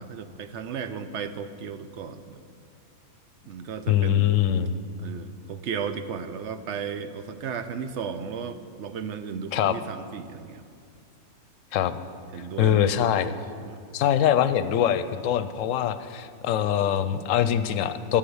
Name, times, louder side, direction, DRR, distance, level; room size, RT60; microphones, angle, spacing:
voice 1, 0.0-2.4 3.5-4.5 5.0-10.6 12.3-12.8 13.6-13.8, right 6 dB, 60° right, 11 dB, 0.8 m, -35 dB
voice 2, 3.9-4.7 9.5-9.8 11.7-12.0 12.6-13.3 13.9-18.2, left 10 dB, 70° left, 12 dB, 0.9 m, -23 dB
11.5 x 8.5 x 7.9 m, 2.3 s
omnidirectional pair, 1.5 m